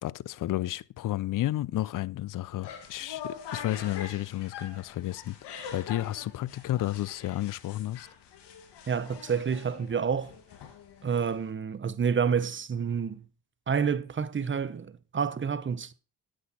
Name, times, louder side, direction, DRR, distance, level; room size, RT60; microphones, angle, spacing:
voice 1, 0.0-8.1, left 14 dB, 55° left, 0.5 m, -32 dB
sound 1, 2.5-11.5, left 7 dB, 85° left, 2.0 m, -44 dB
voice 2, 8.9-10.3 11.0-13.2 13.7-15.9, right 6 dB, 30° right, 0.8 m, -29 dB
10.0 x 7.9 x 4.1 m
cardioid pair, 75°, 40 cm